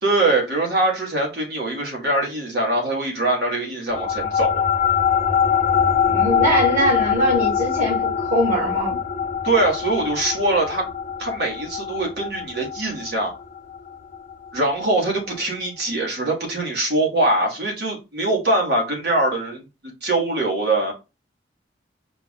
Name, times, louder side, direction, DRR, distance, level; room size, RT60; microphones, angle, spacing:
voice 1, 0.0-4.6 9.4-10.8 11.2-13.3 14.5-19.6 20.0-20.9, right 2 dB, 60° right, 1.7 m, -22 dB
sound 1, 3.9-14.7, left 7 dB, 40° left, 0.6 m, -23 dB
voice 2, 6.0-9.0, right 1 dB, 45° right, 2.1 m, -22 dB
4.7 x 2.4 x 3.7 m
head